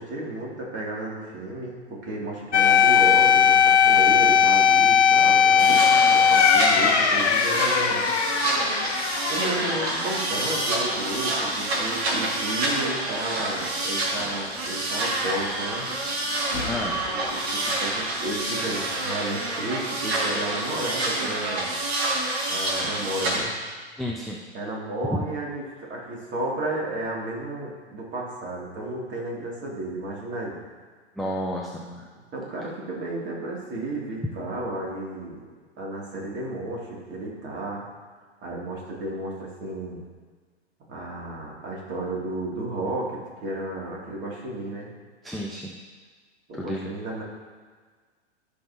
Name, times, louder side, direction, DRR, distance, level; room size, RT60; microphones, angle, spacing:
voice 1, 0.0-8.1 9.0-15.9 17.0-21.7 22.5-23.5 24.5-25.6 25.9-30.6 32.3-35.5 35.8-37.8 38.4-40.0 40.9-44.9 46.5-47.2, right 1 dB, 35° right, -3 dB, 2.7 m, -33 dB
sound 1, 2.5-11.2 11.5-11.6 16.5-17.1, left 7 dB, 75° left, 1.1 m, -19 dB
sound 2, 5.6-23.4, right 2 dB, 65° right, 2.4 m, -28 dB
voice 2, 16.6-17.0 17.6-17.8 24.0-24.4 25.1-25.2 31.2-32.1 45.2-45.8 46.5-46.9, left 1 dB, ahead, -3 dB, 0.3 m, -31 dB
14.5 x 5.5 x 2.9 m, 1.5 s
hypercardioid pair, 115°, 34 cm